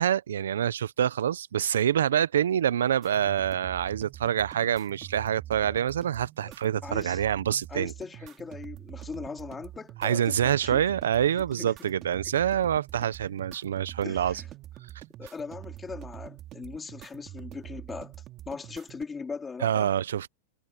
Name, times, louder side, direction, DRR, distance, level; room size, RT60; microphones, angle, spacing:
voice 1, 0.0-7.9 10.0-14.4 19.6-20.3, right 9 dB, 85° right, 0.8 m, -26 dB
sound 1, 3.0-19.0, right 13 dB, 35° right, 3.2 m, -45 dB
voice 2, 6.8-7.2 7.7-10.8 11.6-11.9 14.0-14.5 15.2-18.1 18.5-19.9, left 5 dB, 15° left, 3.7 m, -39 dB
hypercardioid pair, 120°, 0 cm